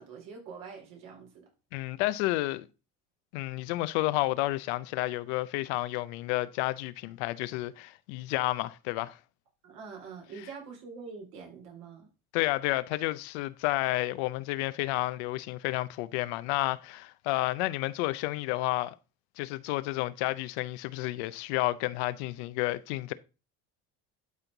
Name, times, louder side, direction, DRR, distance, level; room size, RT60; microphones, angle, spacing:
voice 1, 0.0-1.5 9.6-12.1, right 5 dB, 75° right, 4.3 m, -45 dB
voice 2, 1.7-2.7 3.3-9.2 12.3-19.0 19.4-23.1, left 18 dB, 90° left, 0.7 m, -31 dB
12.0 x 4.5 x 3.9 m
supercardioid pair, 90°, 32 cm